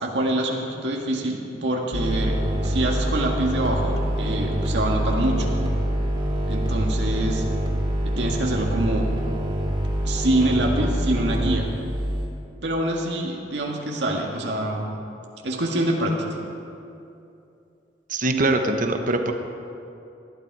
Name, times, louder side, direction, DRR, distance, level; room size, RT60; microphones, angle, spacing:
voice 1, 0.0-5.6 6.5-7.4 8.0-9.0 10.0-11.7 12.6-14.9 15.4-16.2, right 1 dB, 75° right, 0 dB, 1.9 m, -25 dB
sound 1, 1.9-12.3, right 1 dB, 25° right, 2.7 m, -25 dB
voice 2, 18.1-19.3, right 2 dB, 50° right, 5 dB, 1.1 m, -22 dB
19.5 x 12.0 x 4.8 m, 2.7 s
head